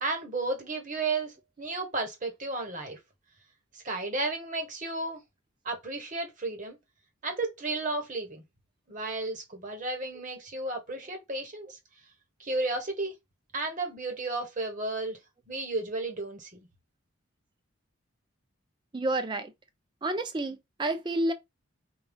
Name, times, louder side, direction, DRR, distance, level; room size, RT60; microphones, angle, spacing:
voice 1, 0.0-3.0 3.7-5.2 5.6-6.8 7.2-8.4 8.9-11.8 12.4-13.1 13.5-15.2 15.5-16.7, right 2 dB, 35° right, 1.0 m, -33 dB
voice 2, 18.9-19.5 20.0-21.3, right 2 dB, 20° right, 0.4 m, -29 dB
4.1 x 2.3 x 3.5 m
head